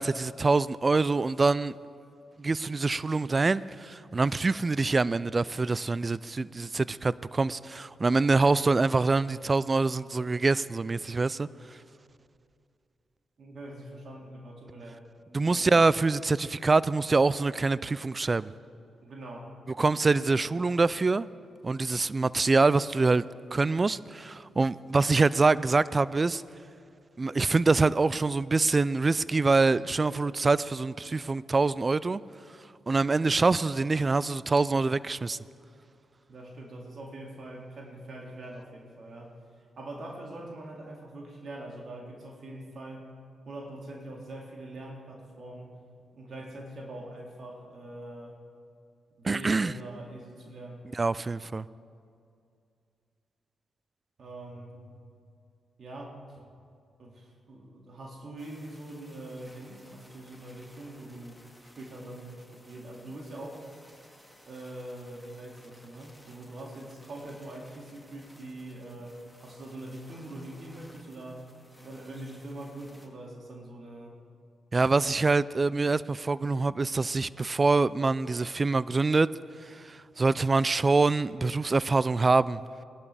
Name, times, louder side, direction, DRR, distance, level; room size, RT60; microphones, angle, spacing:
voice 1, 0.0-1.8 2.4-11.5 15.3-18.5 19.8-21.3 21.6-23.2 23.5-26.4 27.2-32.2 32.9-35.4 49.2-49.7 50.9-51.7 74.7-79.3 79.6-82.6, right 3 dB, 35° right, 0.3 m, -25 dB
voice 2, 13.4-15.0 15.5-15.9 19.0-19.5 36.3-39.4 39.8-43.1 43.5-45.8 46.1-48.4 49.2-50.9 54.2-54.9 55.8-56.2 57.0-61.4 61.8-63.7 64.4-71.5 71.7-74.2, right 1 dB, 60° right, 2.3 m, -43 dB
sound 1, 58.4-73.1, equal, 5° right, 2.3 m, -57 dB
19.5 x 11.5 x 3.4 m
supercardioid pair, 50°, 0 cm